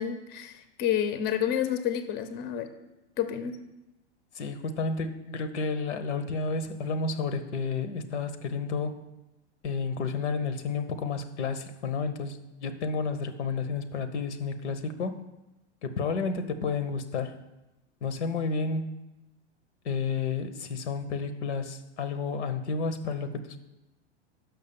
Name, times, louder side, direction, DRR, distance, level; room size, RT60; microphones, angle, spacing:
voice 1, 0.0-2.7 3.2-3.6, left 9 dB, 30° left, 9 dB, 0.7 m, -29 dB
voice 2, 4.3-9.0 9.6-15.2 15.8-17.4 18.0-19.0 19.8-23.6, left 4 dB, 80° left, 10 dB, 0.9 m, -31 dB
6.0 x 5.8 x 6.9 m, 1.0 s
hypercardioid pair, 115°, 34 cm